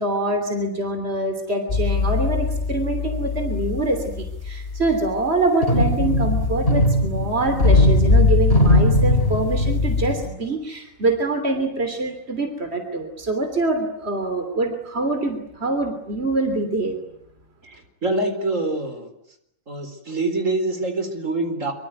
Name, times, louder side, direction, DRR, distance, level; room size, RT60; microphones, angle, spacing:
voice 1, 0.0-17.0, right 2 dB, 50° right, 7 dB, 3.4 m, -25 dB
sound 1, 1.7-10.3, left 2 dB, 45° left, 3.2 m, -20 dB
voice 2, 17.6-19.1 19.7-21.7, right 2 dB, 75° right, 7 dB, 4.5 m, -25 dB
25.5 x 24.5 x 9.5 m, 0.76 s
omnidirectional pair, 1.4 m